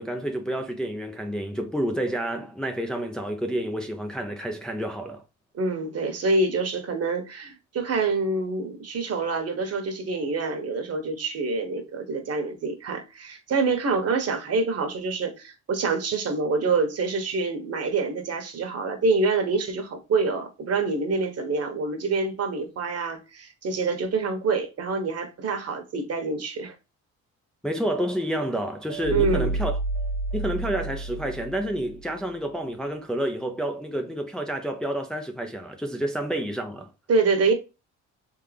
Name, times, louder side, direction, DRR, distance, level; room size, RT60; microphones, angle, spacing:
voice 1, 0.0-5.2 27.6-29.7 30.3-36.9, right 1 dB, 5° left, 0.5 m, -29 dB
voice 2, 5.5-26.7 29.1-29.5 37.1-37.5, right 3 dB, 55° right, 1.3 m, -26 dB
sound 1, 28.9-32.1, right 2 dB, 75° right, 1.4 m, -30 dB
3.7 x 3.3 x 3.3 m
cardioid pair, 90°, 30 cm